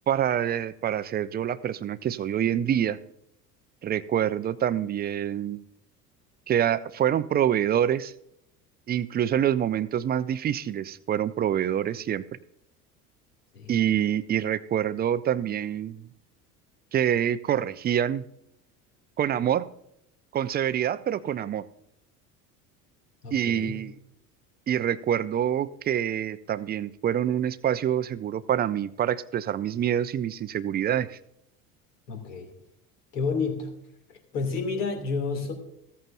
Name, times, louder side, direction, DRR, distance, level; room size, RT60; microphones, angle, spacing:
voice 1, 0.1-3.0 3.8-5.6 6.5-8.1 8.9-12.2 13.7-16.1 16.9-18.2 19.2-19.7 20.3-21.7 23.3-23.9 24.7-31.2, right 10 dB, 20° right, 15 dB, 0.4 m, -26 dB
voice 2, 23.2-23.8 32.1-32.5 33.1-33.7 34.1-35.5, left 4 dB, 70° left, 4 dB, 2.6 m, -30 dB
15.0 x 14.0 x 2.6 m, 0.75 s
figure-of-eight pair, 65°, 48 cm